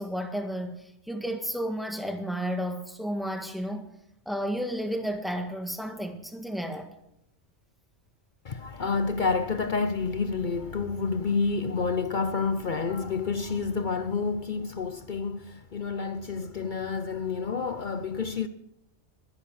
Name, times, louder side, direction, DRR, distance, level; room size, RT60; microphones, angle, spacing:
voice 1, 0.0-3.9 4.2-6.9, equal, ahead, 1.6 m, -32 dB
voice 2, 8.4-18.5, left 4 dB, 45° left, 0.8 m, -29 dB
21.5 x 10.5 x 6.4 m
omnidirectional pair, 1.3 m